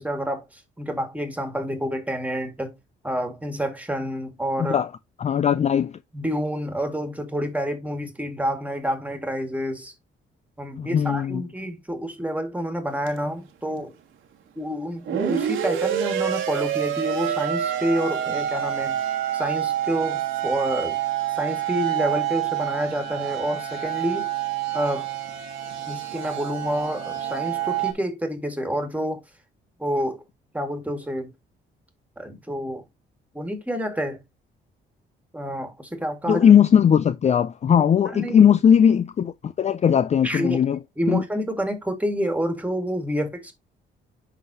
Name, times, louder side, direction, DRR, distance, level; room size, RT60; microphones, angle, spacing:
voice 1, 0.0-2.8 3.0-4.8 6.1-9.9 10.6-13.9 14.6-19.0 19.3-21.0 21.4-24.3 24.7-25.1 25.9-29.2 29.8-30.2 30.5-31.3 32.2-32.8 33.3-34.2 35.3-36.4 37.7-38.5 40.2-40.6 41.0-43.5, equal, 5° right, 1.9 m, -28 dB
voice 2, 5.2-5.9 10.8-11.4 36.3-40.8 41.1-41.2, left 8 dB, 35° left, 0.4 m, -18 dB
sound 1, 13.1-13.2 15.1-27.9, right 11 dB, 85° right, 1.5 m, -27 dB
11.0 x 3.8 x 2.8 m
cardioid pair, 90°, 20 cm